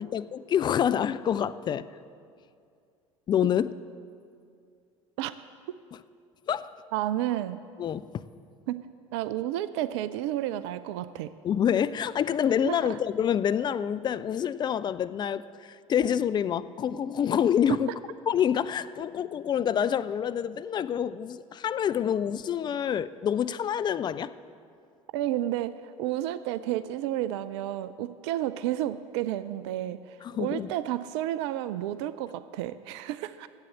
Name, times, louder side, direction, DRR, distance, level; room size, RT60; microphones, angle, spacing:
voice 1, 0.0-1.9 3.3-3.7 6.5-6.8 7.8-8.2 11.4-17.9 18.3-24.3 30.2-30.7, left 9 dB, 25° left, 15 dB, 0.4 m, -27 dB
voice 2, 6.9-7.6 8.7-8.8 9.1-11.3 12.6-12.8 17.7-17.8 25.1-33.5, right 13 dB, 55° right, 14 dB, 0.4 m, -31 dB
10.5 x 8.3 x 7.8 m, 2.4 s
figure-of-eight pair, 65°, 17 cm